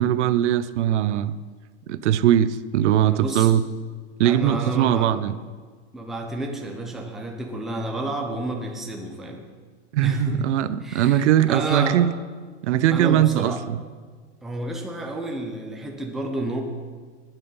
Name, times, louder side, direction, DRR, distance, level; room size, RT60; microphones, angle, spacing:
voice 1, 0.0-1.4 1.9-3.6 4.2-5.3 9.9-12.1 12.6-13.8, right 11 dB, 80° right, 15 dB, 0.7 m, -20 dB
voice 2, 3.0-3.6 4.2-5.1 5.9-9.4 10.0-10.5 10.8-12.0 12.9-13.6 14.4-16.6, right 1 dB, ahead, 0 dB, 0.6 m, -30 dB
12.0 x 9.2 x 5.5 m, 1.5 s
supercardioid pair, 175°, 34 cm